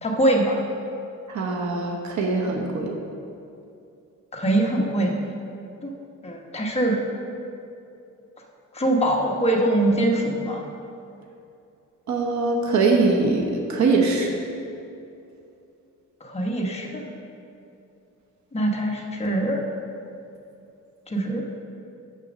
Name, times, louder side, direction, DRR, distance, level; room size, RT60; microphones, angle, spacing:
voice 1, 0.0-0.6 4.3-5.1 5.8-5.9 6.2-7.0 8.7-10.6 16.2-17.0 18.5-19.6 21.1-21.4, right 1 dB, 20° left, -1 dB, 1.0 m, -23 dB
voice 2, 1.3-3.0 12.1-14.3, right 3 dB, 65° right, 0 dB, 0.9 m, -22 dB
6.8 x 6.2 x 6.0 m, 2.7 s
wide cardioid pair, 165°, 31 cm